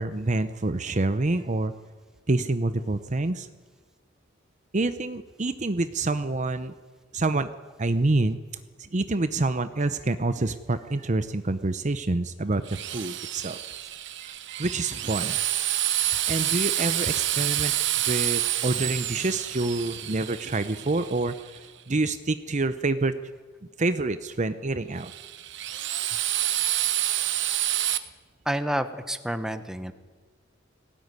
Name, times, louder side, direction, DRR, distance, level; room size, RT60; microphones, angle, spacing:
voice 1, 0.0-1.7 2.3-3.5 4.7-6.7 7.1-7.5 7.8-8.4 8.9-13.6 14.2-15.7 16.3-17.7 18.0-23.1 23.8-25.1, right 2 dB, 40° right, 11 dB, 0.8 m, -27 dB
Drill, 12.7-21.6 25.0-28.0, right 13 dB, 65° right, 1.1 m, -28 dB
voice 2, 28.5-29.9, right 1 dB, 5° right, 10 dB, 1.1 m, -29 dB
20.0 x 17.0 x 9.7 m, 1.4 s
head